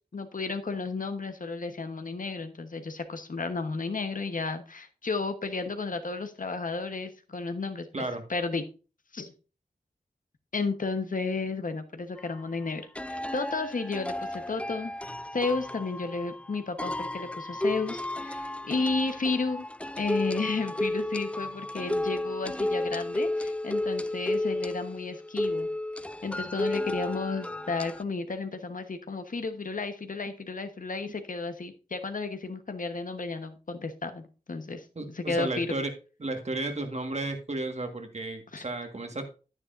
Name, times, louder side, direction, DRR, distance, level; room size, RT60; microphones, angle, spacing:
voice 1, 0.1-8.0 8.3-8.6 9.1-9.3 10.5-19.7 20.0-25.7 26.2-34.8 35.1-35.7 38.5-38.6, left 3 dB, 65° left, 8 dB, 1.1 m, -33 dB
sound 1, 12.2-12.3 12.9-28.0, left 1 dB, 10° left, 0.3 m, -33 dB
voice 2, 34.9-35.9 36.2-39.3, right 2 dB, 50° right, 5 dB, 1.7 m, -33 dB
9.8 x 9.6 x 2.6 m, 0.33 s
wide cardioid pair, 70°, 15 cm